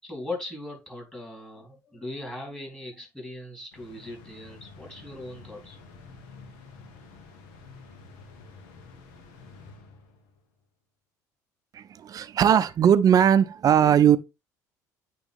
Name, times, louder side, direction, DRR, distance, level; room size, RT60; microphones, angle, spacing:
voice 1, 0.0-5.8, left 2 dB, 10° left, 3.9 m, -39 dB
sound 1, 3.7-10.4, left 4 dB, 70° left, 1.2 m, -49 dB
voice 2, 11.7-14.2, right 9 dB, 40° right, 0.5 m, -19 dB
8.9 x 3.0 x 3.6 m
hypercardioid pair, 65°, 9 cm